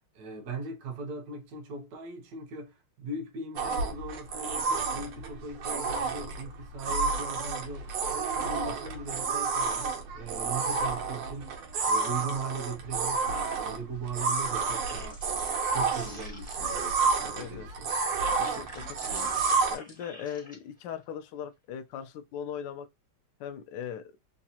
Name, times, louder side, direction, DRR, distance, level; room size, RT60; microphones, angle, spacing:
voice 1, 0.1-15.3 15.7-17.9, right 3 dB, 60° right, 1.0 m, -39 dB
sound 1, 3.6-19.8, right 4 dB, 85° right, 1.6 m, -30 dB
sound 2, 14.7-16.9 17.6-20.6, equal, 5° left, 0.6 m, -47 dB
voice 2, 17.3-17.7 18.4-19.3 19.7-22.9 23.4-24.0, left 8 dB, 75° left, 1.0 m, -39 dB
4.0 x 2.3 x 2.7 m
omnidirectional pair, 2.3 m